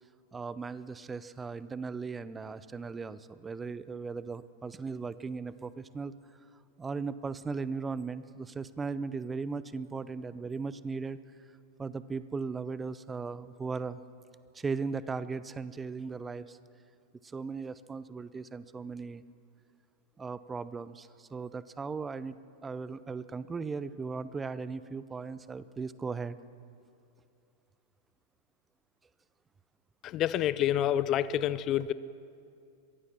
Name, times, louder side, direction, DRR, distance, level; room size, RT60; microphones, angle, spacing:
voice 1, 0.3-6.1 6.8-11.2 11.8-14.0 14.5-16.6 17.2-19.2 20.2-22.4 22.6-26.4, right 4 dB, 15° right, 16 dB, 0.6 m, -37 dB
voice 2, 30.0-31.9, left 11 dB, 35° left, 17 dB, 0.5 m, -28 dB
22.5 x 16.0 x 7.3 m, 2.5 s
figure-of-eight pair, 90°, 0 cm